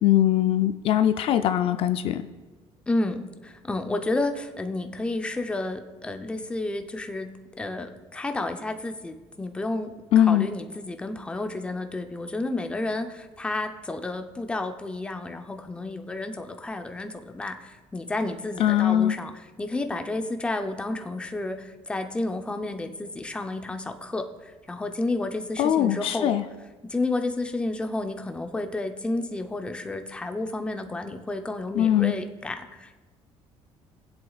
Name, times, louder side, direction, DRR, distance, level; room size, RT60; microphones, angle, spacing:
voice 1, 0.0-2.3 10.1-10.5 18.6-19.2 25.6-26.4 31.7-32.1, left 11 dB, 55° left, 9 dB, 0.4 m, -21 dB
voice 2, 2.9-19.3 19.6-26.3 26.8-33.0, left 2 dB, 10° left, 6 dB, 0.6 m, -31 dB
20.0 x 7.9 x 2.4 m, 1.2 s
cardioid pair, 145°, 11 cm